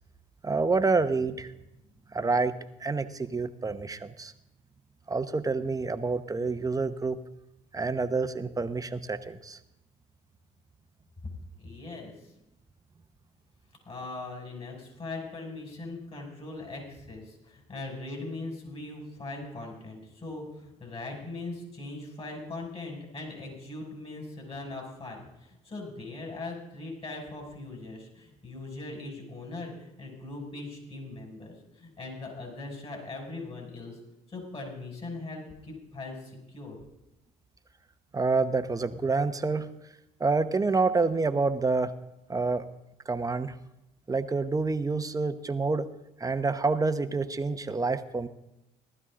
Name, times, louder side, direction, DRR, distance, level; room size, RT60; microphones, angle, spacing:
voice 1, 0.4-1.5 2.1-4.3 5.1-7.2 7.7-9.6 38.1-39.7 40.2-41.9 42.3-42.7 43.1-43.6 44.1-45.9 46.2-48.3, right 3 dB, 20° right, 10 dB, 1.0 m, -28 dB
voice 2, 11.6-12.3 13.9-34.0 34.3-36.8, left 2 dB, 35° left, 1 dB, 5.9 m, -40 dB
18.0 x 12.5 x 3.7 m, 0.90 s
supercardioid pair, 80°, 16 cm